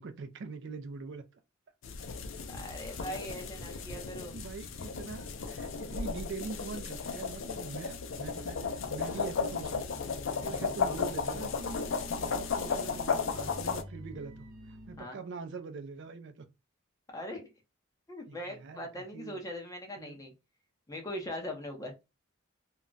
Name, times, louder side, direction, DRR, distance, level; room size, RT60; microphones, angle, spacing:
voice 1, 0.0-1.4 4.3-10.0 10.4-16.5 18.3-19.4 20.0-20.2, right 4 dB, 55° right, 0.4 m, -43 dB
sound 1, 1.8-13.8, left 5 dB, 60° left, 0.4 m, -35 dB
voice 2, 2.5-4.4 15.0-15.2 17.1-17.5 18.1-20.3 20.9-21.9, left 1 dB, 15° left, 0.6 m, -40 dB
sound 2, 8.1-15.0, equal, 75° right, 0.8 m, -48 dB
2.3 x 2.1 x 3.8 m
head